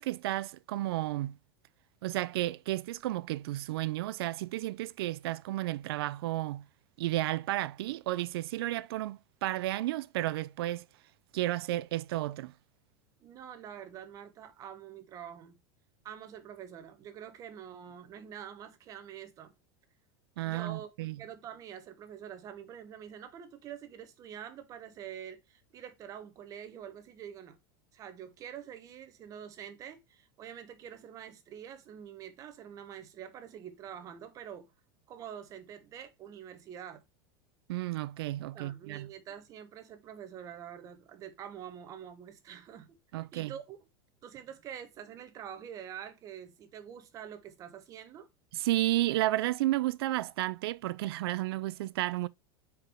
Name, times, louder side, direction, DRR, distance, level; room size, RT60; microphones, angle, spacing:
voice 1, 0.0-1.4 2.0-6.6 7.0-10.9 11.3-12.5 20.4-21.2 37.7-39.1 43.1-43.5 48.5-52.3, right 16 dB, 80° right, 0.4 m, -32 dB
voice 2, 13.2-15.6 16.0-19.5 20.4-27.6 27.9-34.7 35.1-37.0 38.5-43.0 43.3-43.8 44.2-48.3, right 9 dB, 25° right, 1.0 m, -46 dB
4.8 x 4.7 x 4.7 m
supercardioid pair, 165°, 13 cm